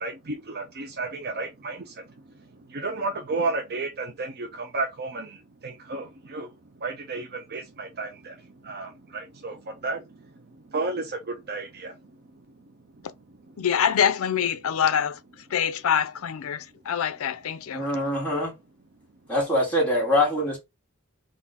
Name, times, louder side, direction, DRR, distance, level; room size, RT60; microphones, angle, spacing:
voice 1, 0.0-1.8 2.7-5.3 5.6-6.1 6.3-6.5 6.8-8.3 8.7-9.5 9.8-10.0 10.7-11.0 11.5-11.9, right 3 dB, 45° right, 0.6 m, -31 dB
voice 2, 13.6-15.2 15.5-17.9, left 8 dB, 70° left, 0.4 m, -25 dB
voice 3, 17.7-18.5 19.3-20.6, left 1 dB, 5° left, 2.0 m, -23 dB
3.6 x 2.5 x 4.0 m
head